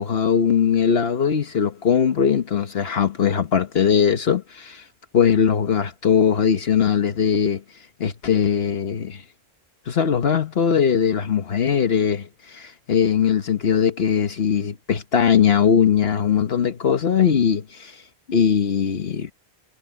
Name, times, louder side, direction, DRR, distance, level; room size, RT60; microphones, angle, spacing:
voice 1, 0.0-4.8 5.1-7.6 8.0-9.2 9.9-18.0 18.3-19.3, left 7 dB, 70° left, 1.3 m, -20 dB
omnidirectional pair, 1.1 m